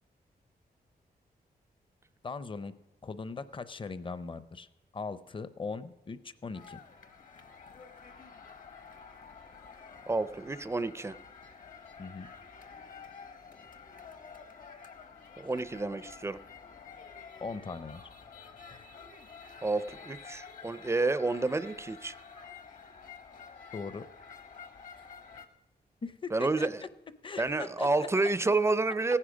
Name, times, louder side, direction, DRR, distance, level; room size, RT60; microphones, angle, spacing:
voice 1, 2.2-2.7 3.0-4.7 4.9-6.8 12.0-12.3 17.4-18.0 18.7-18.9 23.7-24.1 25.3-25.4 26.0-26.7 27.2-28.3, left 4 dB, 30° left, 14 dB, 0.6 m, -40 dB
sound 1, 6.5-25.5, left 5 dB, 55° left, 1.0 m, -50 dB
voice 2, 10.1-11.1 15.4-16.4 19.6-22.1 26.3-26.8 27.4-29.2, right 3 dB, 15° right, 15 dB, 0.4 m, -29 dB
16.0 x 9.9 x 5.1 m, 1.0 s
wide cardioid pair, 110°, 17 cm